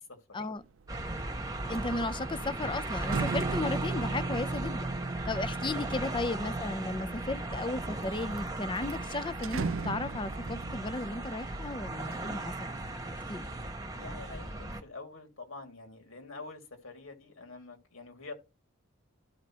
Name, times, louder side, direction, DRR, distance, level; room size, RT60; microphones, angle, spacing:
sound 1, 0.7-1.0 1.4-6.7 7.4-8.0 8.4-8.5 8.8-12.7 13.1-13.7, right 5 dB, 80° right, 0.5 m, -40 dB
sound 2, 0.9-14.8, right 2 dB, 20° right, 1.2 m, -36 dB
voice 1, 1.7-4.9 5.3-12.8 13.3-13.4, left 2 dB, 25° left, 0.5 m, -35 dB
sound 3, 3.3-13.1, right 2 dB, 35° right, 0.9 m, -43 dB
voice 2, 5.5-5.9 14.0-18.3, left 3 dB, 80° left, 2.5 m, -46 dB
14.5 x 5.1 x 3.0 m
head